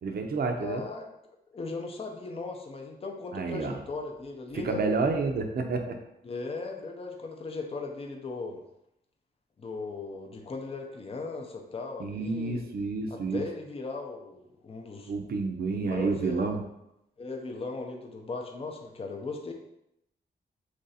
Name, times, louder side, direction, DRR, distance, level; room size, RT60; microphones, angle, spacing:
voice 1, 0.0-0.8 3.3-3.8 4.6-6.0 12.0-13.4 15.1-16.6, right 4 dB, 60° right, 5 dB, 0.5 m, -29 dB
voice 2, 0.6-1.1 1.5-4.8 6.2-8.6 9.6-12.6 13.1-15.1 15.8-16.5 17.2-19.5, left 3 dB, 35° left, 2 dB, 0.5 m, -38 dB
3.2 x 2.6 x 4.0 m, 0.83 s
wide cardioid pair, 100°, 18 cm